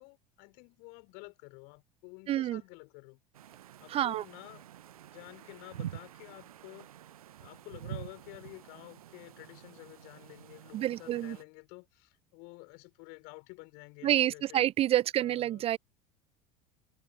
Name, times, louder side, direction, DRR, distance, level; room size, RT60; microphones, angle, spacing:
voice 1, 0.0-3.2 3.8-4.6 5.1-6.9 7.4-14.7 15.2-15.6, left 31 dB, 55° left, 4.1 m, -50 dB
voice 2, 2.3-2.6 3.9-4.2 10.7-11.4 14.0-15.8, right 12 dB, 30° right, 0.5 m, -28 dB
sound 1, 3.3-11.4, right 12 dB, 70° right, 1.0 m, -47 dB
figure-of-eight pair, 70°, 19 cm